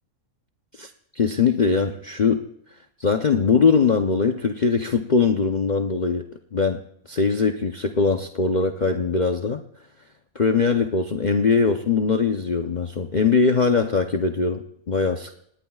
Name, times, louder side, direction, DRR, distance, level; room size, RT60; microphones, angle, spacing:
voice 1, 1.2-2.4 3.0-6.2 6.5-6.8 7.1-9.6 10.3-15.4, left 5 dB, 40° left, 5 dB, 0.7 m, -21 dB
28.0 x 19.5 x 2.4 m, 0.70 s
omnidirectional pair, 1.5 m